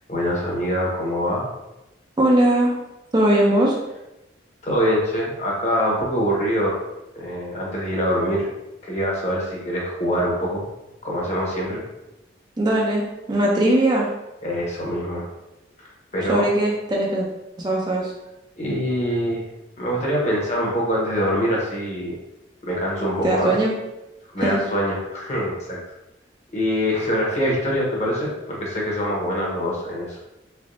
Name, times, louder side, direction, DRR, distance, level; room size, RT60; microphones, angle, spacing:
voice 1, 0.1-1.4 4.6-6.7 7.1-8.5 8.8-10.6 11.0-11.8 14.4-15.3 16.1-16.5 18.6-19.5 19.8-22.1 22.6-23.5 24.3-25.8 26.5-30.2, equal, 35° left, -4 dB, 0.9 m, -24 dB
voice 2, 2.2-2.8 3.1-3.8 12.6-14.1 16.3-17.3 17.6-18.1 23.2-23.7 24.4-24.6, right 1 dB, 20° right, -2 dB, 0.4 m, -19 dB
3.5 x 3.3 x 2.5 m, 0.95 s
head